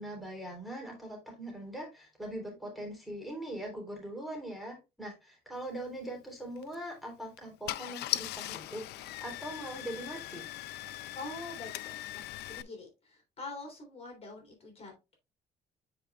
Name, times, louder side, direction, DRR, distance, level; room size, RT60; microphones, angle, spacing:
voice 1, 0.0-10.5, right 1 dB, ahead, -1 dB, 3.4 m, -41 dB
Car / Engine starting, 6.6-6.8 7.4-7.5 7.7-12.6, left 15 dB, 75° left, 0.5 m, -39 dB
voice 2, 11.1-15.2, left 2 dB, 35° left, 1 dB, 3.1 m, -45 dB
9.4 x 5.0 x 2.3 m, 0.26 s
cardioid pair, 110°, 17 cm